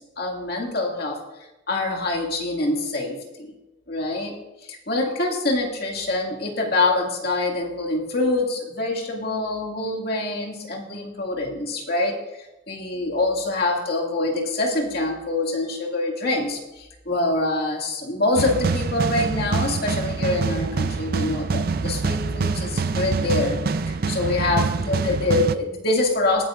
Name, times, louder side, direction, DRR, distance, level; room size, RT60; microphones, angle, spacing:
voice 1, 0.2-1.2 1.7-3.5 3.9-4.3 4.6-12.2 12.7-23.6 24.1-26.4, left 2 dB, 55° left, -1 dB, 2.2 m, -25 dB
sound 1, 18.4-25.5, right 4 dB, 50° right, 0.4 m, -25 dB
20.0 x 9.2 x 2.5 m, 0.97 s
head